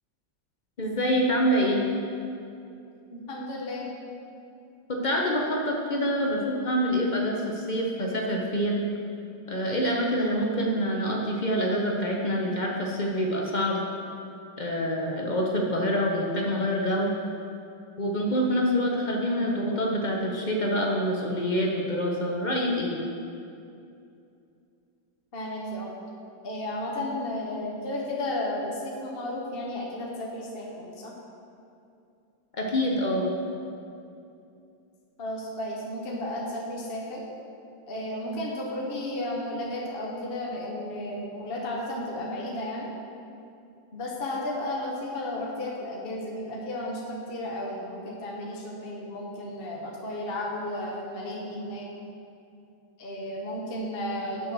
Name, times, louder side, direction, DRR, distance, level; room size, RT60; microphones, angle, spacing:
voice 1, 0.8-1.8 4.9-8.8 9.5-13.8 14.6-17.1 18.0-23.0 32.5-33.3, equal, 55° left, -1 dB, 0.5 m, -26 dB
voice 2, 3.1-3.9 25.3-25.9 26.4-31.1 35.2-37.2 37.9-42.9 43.9-51.9 53.0-54.5, left 1 dB, 35° left, -3 dB, 1.1 m, -33 dB
7.7 x 6.4 x 6.2 m, 2.6 s
omnidirectional pair, 2.1 m